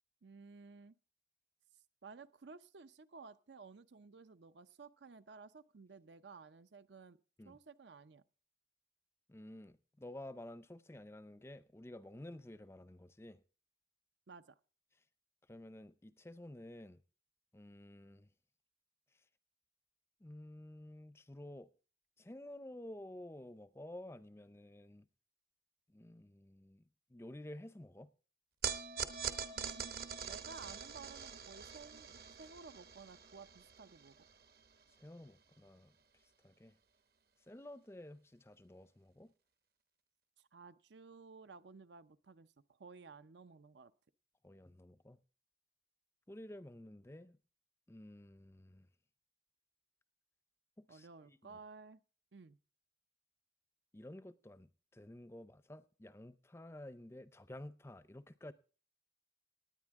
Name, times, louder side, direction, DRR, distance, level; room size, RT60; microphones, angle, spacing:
voice 1, 0.2-1.0 2.0-7.2 7.4-8.2 14.3-14.6 29.5-34.1 40.4-43.9 50.9-52.0 52.3-52.6, right 4 dB, 80° right, 0.6 m, -55 dB
voice 2, 9.3-13.4 15.5-17.0 17.5-18.3 20.2-21.7 22.2-25.0 25.9-26.8 27.1-28.1 35.0-35.9 36.4-36.7 37.5-39.3 44.4-45.2 46.3-47.4 47.9-48.9 50.9-51.6 53.9-58.5, left 1 dB, 15° left, 0.5 m, -52 dB
sound 1, 28.6-35.0, right 7 dB, 55° right, 0.9 m, -44 dB
18.5 x 9.6 x 3.6 m
head